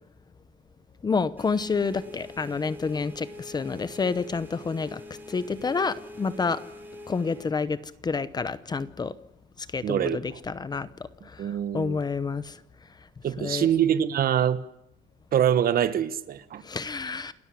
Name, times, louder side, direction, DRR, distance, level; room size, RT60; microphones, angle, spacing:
voice 1, 1.0-5.0 5.3-6.6 7.1-7.8 8.0-9.1 9.7-10.9 11.3-12.6 13.4-13.7 16.6-17.3, left 4 dB, 20° left, 0.8 m, -29 dB
sound 1, 1.4-7.5, left 2 dB, 10° right, 4.7 m, -44 dB
voice 2, 9.8-10.4 11.4-12.0 13.2-14.6 15.3-16.6, right 9 dB, 45° right, 1.3 m, -24 dB
29.0 x 13.5 x 10.0 m
cardioid pair, 175°, 21 cm